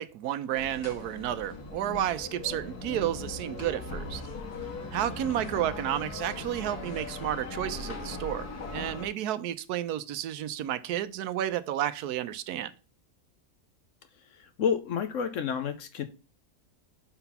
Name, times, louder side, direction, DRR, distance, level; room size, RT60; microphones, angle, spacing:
voice 1, 0.0-4.2 4.9-12.7, right 11 dB, 80° right, 1.1 m, -31 dB
sound 1, 0.5-9.1, left 3 dB, 85° left, 1.9 m, -39 dB
voice 2, 14.4-16.0, left 7 dB, 65° left, 0.9 m, -30 dB
5.9 x 4.4 x 5.7 m
omnidirectional pair, 1.6 m